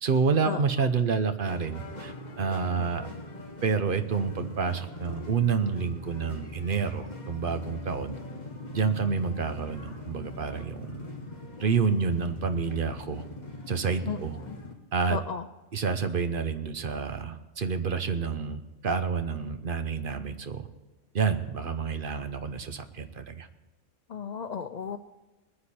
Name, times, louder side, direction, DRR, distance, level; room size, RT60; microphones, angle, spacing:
voice 1, 0.0-3.1 3.6-8.1 8.7-11.1 11.6-13.2 13.7-14.4 14.9-15.2 15.7-20.7 21.1-23.5, right 5 dB, 50° right, 9 dB, 0.9 m, -28 dB
sound 1, 1.5-14.7, left 2 dB, 35° left, 1.6 m, -42 dB
voice 2, 15.1-15.4 24.1-25.0, left 6 dB, 85° left, 10 dB, 0.3 m, -33 dB
20.5 x 9.8 x 4.3 m, 1.1 s
omnidirectional pair, 1.3 m